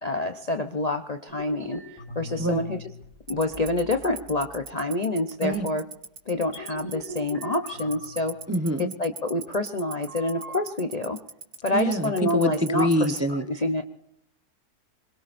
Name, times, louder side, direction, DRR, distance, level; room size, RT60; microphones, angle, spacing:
voice 1, 0.0-1.8 2.2-2.8 3.3-5.8 6.3-8.4 8.8-11.2 11.6-13.8, left 2 dB, 40° left, 6 dB, 0.6 m, -27 dB
sound 1, 1.3-3.0 3.4-4.3 4.8-4.9 5.5-5.7 6.4-8.9 10.1-10.6, left 1 dB, 20° left, 4.0 m, -40 dB
Tick-tock, 3.3-13.2, right 6 dB, 70° right, 1.9 m, -36 dB
voice 2, 8.5-8.9 11.7-13.4, equal, 15° right, 7 dB, 0.6 m, -25 dB
25.5 x 22.0 x 2.6 m, 0.77 s
omnidirectional pair, 1.6 m